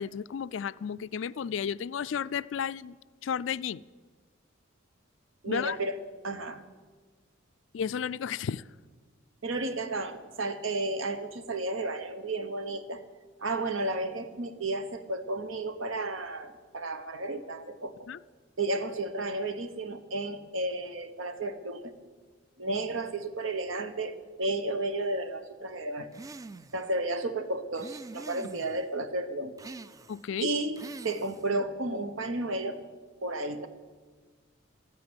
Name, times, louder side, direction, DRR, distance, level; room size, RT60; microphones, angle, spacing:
voice 1, 0.0-3.0 3.2-3.8 5.4-5.8 7.7-8.6 18.1-18.2 30.1-30.5, left 7 dB, 65° left, 18 dB, 0.4 m, -33 dB
voice 2, 5.4-6.0 6.2-6.6 9.4-13.0 13.4-18.1 18.6-21.9 22.6-26.1 26.7-29.5 30.4-32.8 33.2-33.7, right 2 dB, 80° right, 9 dB, 1.2 m, -32 dB
sound 1, 26.1-26.9 27.8-28.8 29.6-30.3 30.8-31.5, right 3 dB, 15° right, 0.4 m, -44 dB
13.5 x 9.4 x 9.8 m, 1.4 s
head